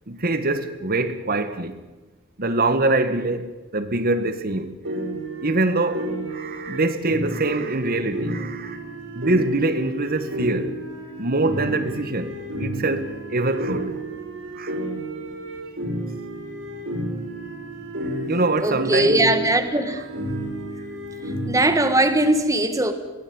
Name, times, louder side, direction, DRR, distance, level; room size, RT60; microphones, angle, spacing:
voice 1, 0.1-1.8 2.4-4.7 5.4-8.8 9.1-10.8 11.2-14.0 14.5-14.8 18.3-19.2, right 2 dB, 50° right, 1.6 m, -24 dB
sound 1, 4.8-22.3, right 1 dB, 70° right, 5.4 m, -31 dB
voice 2, 18.3-20.0 21.5-22.9, right 1 dB, 15° right, 1.6 m, -20 dB
22.5 x 17.0 x 8.7 m
head